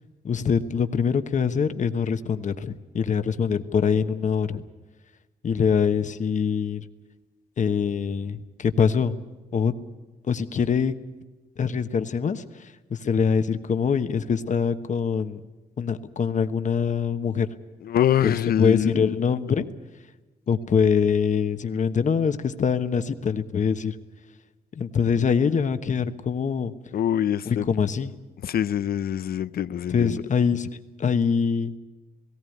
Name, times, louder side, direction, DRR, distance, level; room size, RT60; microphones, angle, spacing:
voice 1, 0.2-4.6 5.4-6.8 7.6-9.2 9.5-9.7 10.3-10.9 11.6-15.4 15.8-17.5 18.2-19.7 20.5-24.0 24.8-26.7 27.5-28.1 29.9-30.7 31.0-31.7, left 6 dB, 50° left, 1.2 m, -24 dB
voice 2, 17.8-19.2 26.9-27.6 28.4-30.2, left 10 dB, 70° left, 0.6 m, -24 dB
18.0 x 17.5 x 9.3 m
cardioid pair, 105°, 16 cm